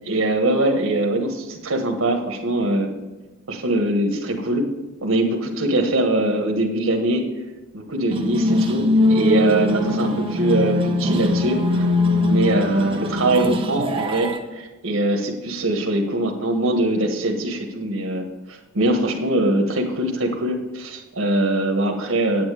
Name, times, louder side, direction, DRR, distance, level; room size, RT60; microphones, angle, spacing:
voice 1, 0.1-2.9 3.5-4.6 5.0-7.2 7.7-11.8 12.2-22.4, right 1 dB, 85° right, 1 dB, 1.3 m, -22 dB
sound 1, 8.1-14.4, left 1 dB, 25° right, 1.0 m, -21 dB
9.2 x 8.9 x 4.9 m, 1.1 s
head